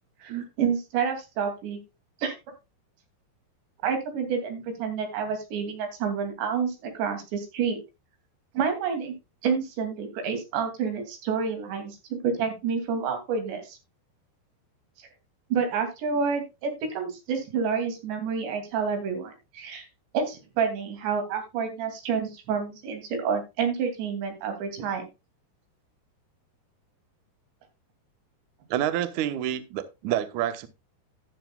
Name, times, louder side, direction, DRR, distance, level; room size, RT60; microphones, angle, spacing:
voice 1, 0.2-1.8 2.2-2.4 3.8-7.8 8.5-9.1 9.4-13.8 15.5-19.9 20.1-25.0, right 6 dB, 90° right, 4.9 m, -29 dB
voice 2, 28.7-30.7, right 11 dB, 70° right, 1.9 m, -28 dB
13.0 x 11.5 x 2.3 m
omnidirectional pair, 4.9 m